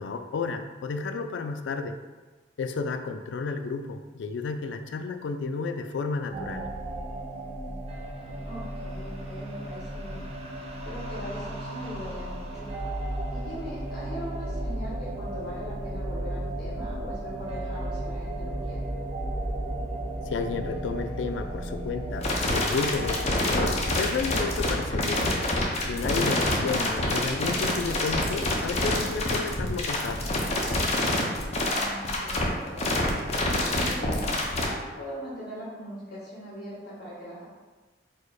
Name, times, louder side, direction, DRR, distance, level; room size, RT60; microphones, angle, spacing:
voice 1, 0.0-2.0 2.6-6.7 20.3-25.2 25.8-30.2, left 4 dB, 85° left, 8 dB, 0.4 m, -32 dB
sound 1, 6.3-25.5, right 1 dB, 35° right, 0.5 m, -34 dB
voice 2, 8.5-10.3 10.5-12.7 13.3-18.9 31.6-32.9 33.2-37.5, equal, 60° left, -8 dB, 1.2 m, -40 dB
sound 2, 22.2-34.6, left 1 dB, 35° left, 0.7 m, -26 dB
4.5 x 2.1 x 4.6 m, 1.3 s
head